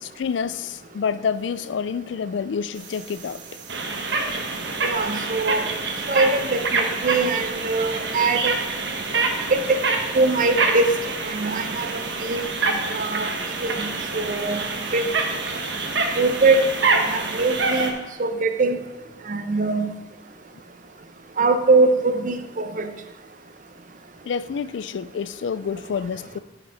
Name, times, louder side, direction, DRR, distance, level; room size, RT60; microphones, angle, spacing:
voice 1, 0.0-3.4 24.3-26.4, left 6 dB, 90° left, 0.4 m, -28 dB
sound 1, 2.8-17.9, right 3 dB, 70° right, 1.3 m, -26 dB
voice 2, 4.8-5.7 6.1-8.6 9.5-9.8 10.1-10.8 11.2-13.3 13.6-14.6 14.9-15.1 16.1-17.9 18.2-18.8 19.3-20.0 21.4-22.9, right 3 dB, 45° right, 0.8 m, -22 dB
9.6 x 5.9 x 5.7 m
head